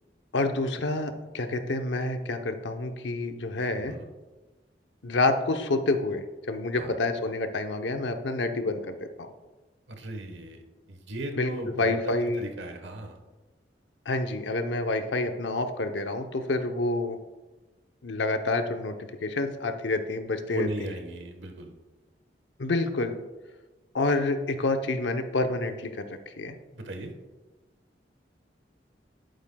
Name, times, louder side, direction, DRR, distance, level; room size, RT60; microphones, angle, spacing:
voice 1, 0.3-3.9 5.0-9.0 11.3-11.5 11.8-12.4 14.1-17.2 18.0-20.7 22.6-23.2 23.9-26.6, left 2 dB, 90° left, 6 dB, 0.8 m, -28 dB
voice 2, 3.8-4.1 6.8-6.9 9.9-10.6 10.9-13.2 20.5-21.7 26.7-27.1, right 1 dB, 85° right, 5 dB, 1.2 m, -36 dB
11.0 x 8.9 x 2.3 m, 1.2 s
head